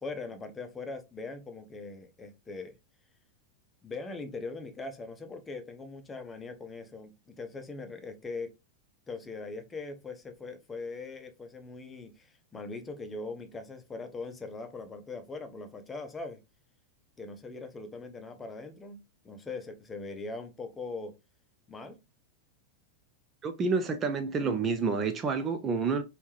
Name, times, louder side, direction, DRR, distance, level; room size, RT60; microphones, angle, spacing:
voice 1, 0.0-2.7 3.8-8.5 9.1-16.4 17.2-21.1 21.7-22.0, left 3 dB, 15° left, 0.8 m, -41 dB
voice 2, 23.4-26.0, right 4 dB, 25° right, 0.4 m, -29 dB
3.4 x 2.8 x 3.1 m
figure-of-eight pair, 90°, 0 cm